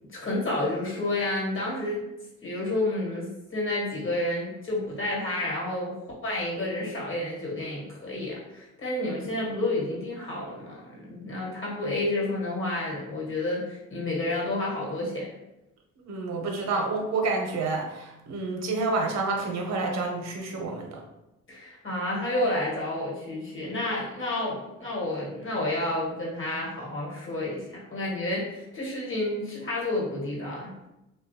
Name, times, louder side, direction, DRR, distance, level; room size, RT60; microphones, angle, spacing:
voice 1, 0.1-2.0 2.4-6.0 6.2-15.3 21.5-30.7, left 1 dB, 40° left, -4 dB, 1.3 m, -30 dB
voice 2, 16.0-21.0, right 3 dB, 60° right, 1 dB, 0.8 m, -29 dB
3.0 x 2.3 x 2.7 m, 0.93 s
cardioid pair, 90°, 30 cm